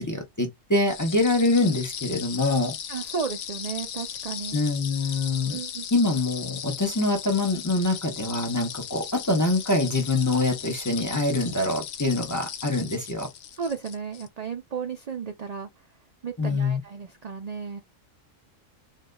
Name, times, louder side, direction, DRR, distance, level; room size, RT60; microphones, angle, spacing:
voice 1, 0.0-2.7 4.5-5.6 5.9-13.3 16.4-16.8, left 2 dB, 15° left, 0.8 m, -25 dB
sound 1, 0.9-14.3, left 9 dB, 65° left, 0.8 m, -37 dB
voice 2, 2.9-4.6 5.5-5.9 13.5-15.7 16.2-17.8, right 6 dB, 65° right, 0.4 m, -34 dB
3.7 x 2.6 x 2.3 m
omnidirectional pair, 1.4 m